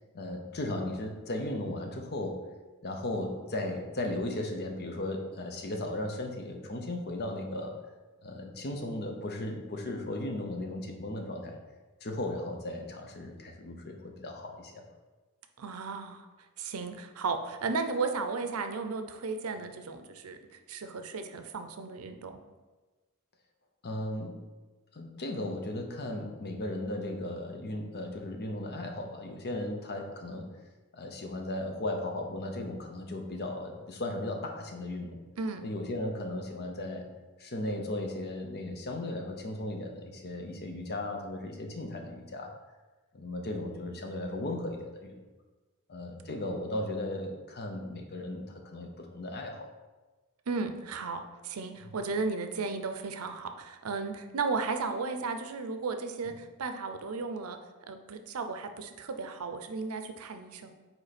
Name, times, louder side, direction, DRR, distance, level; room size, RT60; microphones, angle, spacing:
voice 1, 0.1-2.4 2.8-7.8 8.2-11.6 12.0-14.8 23.8-24.4 24.9-30.5 30.9-35.2 35.6-37.1 37.4-42.5 43.1-45.2 45.9-49.7, left 1 dB, 50° left, 3 dB, 0.8 m, -36 dB
voice 2, 15.6-16.3 16.6-22.4 35.4-35.7 50.5-57.6 57.9-60.7, right 4 dB, 85° right, 7 dB, 0.6 m, -35 dB
5.3 x 4.5 x 4.2 m, 1.2 s
head